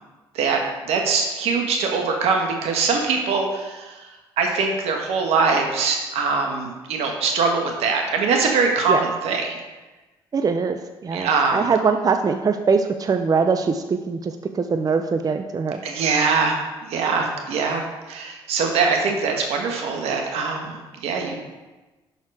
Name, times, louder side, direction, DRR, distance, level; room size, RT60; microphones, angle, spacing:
voice 1, 0.8-4.1 4.4-9.6 11.1-11.7 15.8-21.4, right 4 dB, 75° right, 2 dB, 1.3 m, -22 dB
voice 2, 10.3-10.8 11.0-15.8, right 5 dB, 35° right, 7 dB, 0.5 m, -22 dB
6.2 x 5.6 x 4.7 m, 1.2 s
supercardioid pair, 60°, 11 cm